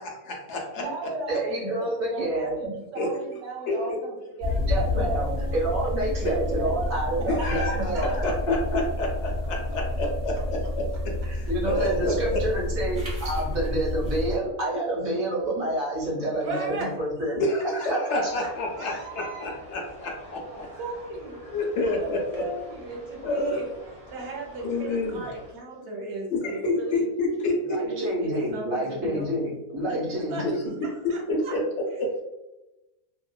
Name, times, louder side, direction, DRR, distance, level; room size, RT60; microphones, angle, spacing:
voice 1, 0.0-0.8 3.0-3.1 3.7-4.0 6.2-6.3 7.3-12.4 17.4-20.7 21.4-22.5 23.2-23.6 24.6-25.2 26.3-27.8 30.4-30.5 31.0-32.2, left 2 dB, 65° left, 0 dB, 0.7 m, -29 dB
voice 2, 0.8-4.8 5.2-5.6 6.0-6.1 6.6-6.8 7.4-8.3 11.6-11.8 16.4-16.9 18.0-18.5 18.8-19.5 20.5-21.4 22.0-23.6 24.1-27.0 27.8-29.4 29.9-30.5 31.1-31.5, right 2 dB, 85° right, -1 dB, 1.2 m, -37 dB
voice 3, 1.3-2.5 4.7-8.2 11.2-17.4 17.9-18.0 27.6-30.6, right 1 dB, 70° right, -6 dB, 1.3 m, -28 dB
sound 1, 4.4-14.4, left 1 dB, 25° right, 1.4 m, -29 dB
sound 2, 18.2-25.5, equal, 5° right, 0.8 m, -47 dB
3.0 x 2.1 x 2.2 m, 0.98 s
omnidirectional pair, 1.5 m